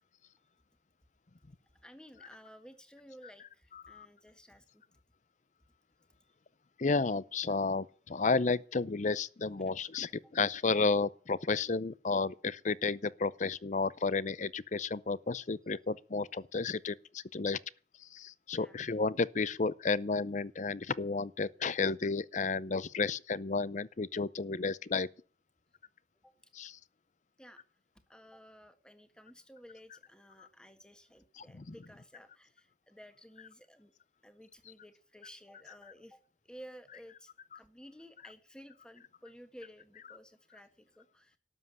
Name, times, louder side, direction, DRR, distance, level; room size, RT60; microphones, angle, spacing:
voice 1, 1.8-4.8 9.6-9.7 10.1-10.2 18.5-18.8 26.2-26.3 27.4-27.6 28.1-33.9 34.2-41.4, equal, 5° left, 1.6 m, -54 dB
voice 2, 3.7-4.1 6.8-17.6 18.0-25.1 26.5-26.8 30.4-30.5 31.4-31.7 37.5-37.6, left 4 dB, 40° left, 0.6 m, -32 dB
12.5 x 7.7 x 9.7 m
head